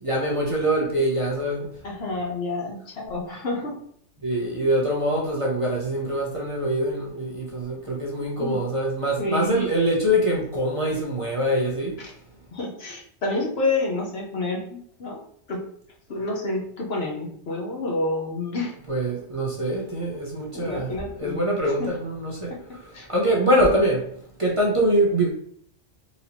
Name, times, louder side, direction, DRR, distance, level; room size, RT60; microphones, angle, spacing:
voice 1, 0.0-1.7 4.2-11.9 18.9-22.5 23.1-24.0 24.4-25.3, equal, 30° right, -4 dB, 0.8 m, -24 dB
voice 2, 1.8-3.8 8.4-8.6 9.2-9.7 12.0-12.1 12.5-15.2 15.5-15.6 16.1-18.7 20.5-21.4 21.6-21.9 22.5-22.6 22.9-23.1, left 2 dB, 60° left, 0 dB, 1.0 m, -29 dB
4.1 x 2.7 x 2.8 m, 0.65 s
omnidirectional pair, 1.2 m